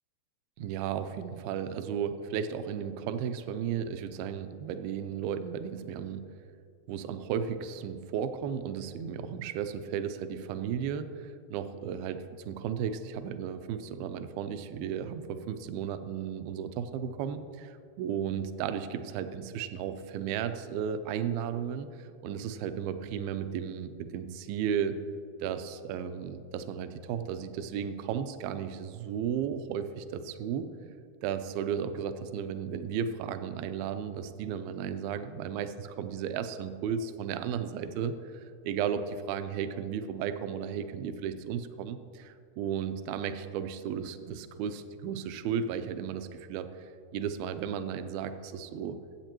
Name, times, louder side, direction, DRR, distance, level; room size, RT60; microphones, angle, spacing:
voice 1, 0.6-6.2 6.9-25.0 25.4-30.7 31.2-49.0, right 8 dB, 80° right, 10 dB, 2.3 m, -34 dB
22.5 x 8.2 x 3.0 m, 2.3 s
omnidirectional pair, 4.7 m